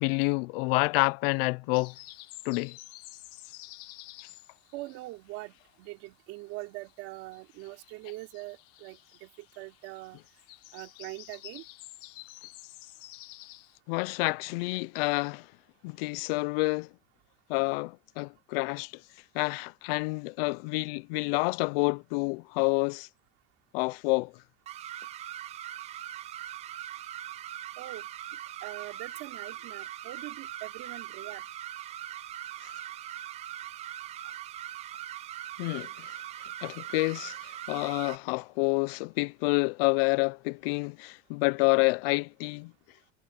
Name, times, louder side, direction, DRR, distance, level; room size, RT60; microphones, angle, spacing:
voice 1, 0.0-1.9 2.5-2.8 13.9-15.4 15.8-16.9 17.5-18.9 19.3-23.1 23.7-24.3 35.6-35.9 36.6-37.4 37.7-42.7, left 28 dB, 65° left, 0.5 m, -28 dB
sound 1, 1.7-6.1 6.3-13.8, left 19 dB, 45° left, 1.2 m, -50 dB
voice 2, 4.7-5.5 5.8-9.3 9.6-10.2 10.7-11.6 27.8-28.0 28.6-31.4, right 20 dB, 50° right, 3.1 m, -42 dB
sound 2, 24.7-38.2, right 12 dB, 20° right, 0.5 m, -41 dB
cardioid pair, 175°, 32 cm